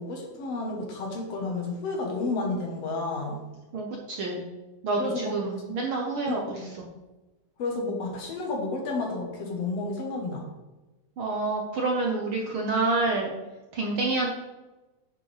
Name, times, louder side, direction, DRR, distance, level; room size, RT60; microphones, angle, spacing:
voice 1, 0.0-3.4 5.0-5.3 6.3-6.7 7.6-10.5, left 3 dB, 65° left, 1 dB, 2.2 m, -31 dB
voice 2, 3.7-4.5 4.8-6.9 11.2-13.3 13.7-14.3, right 3 dB, 65° right, -1 dB, 1.4 m, -28 dB
9.2 x 6.9 x 3.3 m, 1.1 s
omnidirectional pair, 3.3 m